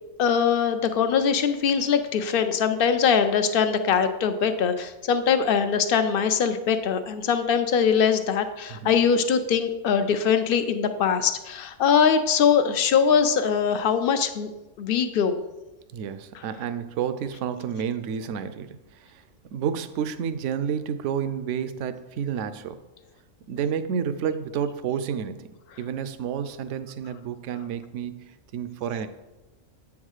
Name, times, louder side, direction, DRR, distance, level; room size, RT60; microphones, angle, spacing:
voice 1, 0.2-14.5 14.8-15.4, left 7 dB, 60° left, 9 dB, 0.6 m, -22 dB
voice 2, 15.9-19.2 19.5-22.8 23.5-25.5 25.8-29.1, right 8 dB, 70° right, 11 dB, 0.9 m, -30 dB
8.1 x 3.6 x 6.3 m, 1.0 s
omnidirectional pair, 1.4 m